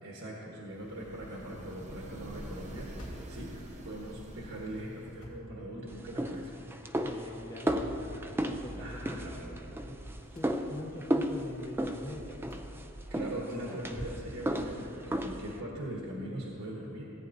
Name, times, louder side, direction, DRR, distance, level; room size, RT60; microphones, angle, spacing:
voice 1, 0.0-3.5 3.8-6.5 8.7-9.5 13.1-17.0, right 1 dB, 65° right, -3 dB, 1.2 m, -41 dB
sound 1, 0.7-5.4, right 1 dB, 35° right, 0.8 m, -46 dB
sound 2, 3.0-3.4 5.2-5.5 7.7-8.0 10.4-10.6 12.5-12.7 14.6-14.8, equal, 70° left, 2.4 m, -48 dB
sound 3, 5.9-15.6, right 1 dB, 10° right, 0.4 m, -35 dB
voice 2, 7.0-12.4, left 1 dB, 15° left, -3 dB, 0.7 m, -44 dB
16.5 x 8.9 x 2.7 m, 2.9 s
head